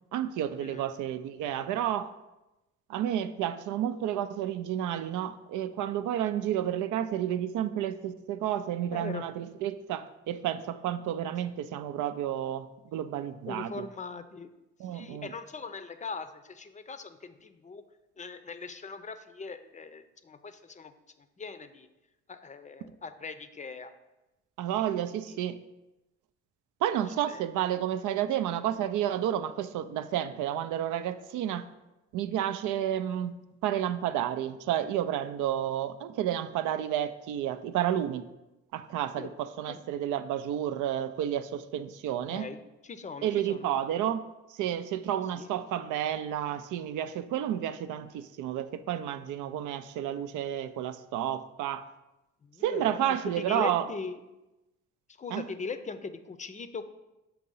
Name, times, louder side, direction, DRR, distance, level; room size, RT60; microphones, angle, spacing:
voice 1, 0.1-2.1 2.9-13.9 14.8-15.3 24.6-25.6 26.8-31.7 32.1-33.3 33.6-38.3 38.7-42.5 43.2-51.9 52.6-53.9 55.3-55.5, right 11 dB, 85° right, 12 dB, 0.5 m, -31 dB
voice 2, 8.9-9.2 13.5-14.5 14.9-17.8 18.2-20.9 21.4-21.9 22.3-23.9 27.3-27.4 39.2-39.3 39.7-39.8 42.3-43.6 45.3-45.5 52.4-54.2 55.2-56.9, left 4 dB, 25° left, 10 dB, 0.5 m, -40 dB
7.3 x 2.9 x 5.4 m, 0.99 s
cardioid pair, 90°, 30 cm